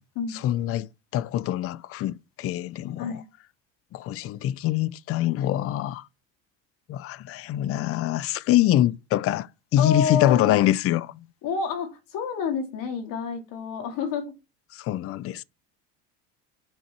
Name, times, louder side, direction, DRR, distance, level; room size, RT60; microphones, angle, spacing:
voice 1, 0.4-3.1 3.9-6.1 6.9-11.2 14.7-15.4, left 13 dB, 40° left, 0.5 m, -24 dB
voice 2, 9.8-10.6 11.4-14.3, left 6 dB, 60° left, 2.9 m, -29 dB
9.1 x 5.5 x 4.6 m
supercardioid pair, 105°, 37 cm